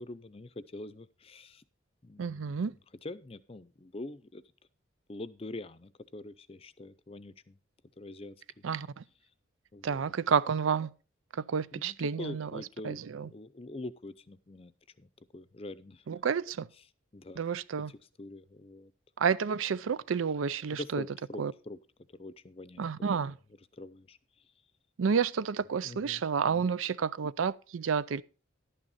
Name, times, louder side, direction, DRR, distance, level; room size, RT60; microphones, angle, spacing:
voice 1, 0.0-1.6 2.0-2.7 3.0-4.4 5.1-7.6 8.0-8.6 9.7-10.1 11.7-16.0 17.1-17.4 17.8-18.9 20.7-21.8 22.1-23.3 23.7-24.2 25.8-26.7, left 2 dB, 30° left, 0.6 m, -45 dB
voice 2, 2.2-2.7 8.6-9.0 9.8-10.9 11.5-13.3 16.1-16.7 17.4-17.9 19.2-21.0 21.4-21.5 22.8-23.3 25.0-28.2, right 6 dB, 90° right, 0.5 m, -30 dB
11.5 x 9.0 x 4.1 m
head